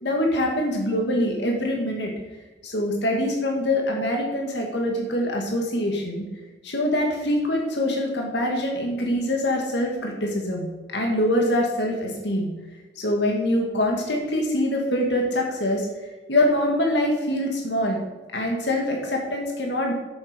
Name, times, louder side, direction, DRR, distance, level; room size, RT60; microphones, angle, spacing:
voice 1, 0.0-2.1 2.6-6.2 6.6-10.7 10.9-12.5 13.0-15.9 16.3-18.0 18.3-19.9, left 1 dB, 70° left, 0 dB, 2.2 m, -24 dB
12.5 x 8.1 x 5.3 m, 1.2 s
head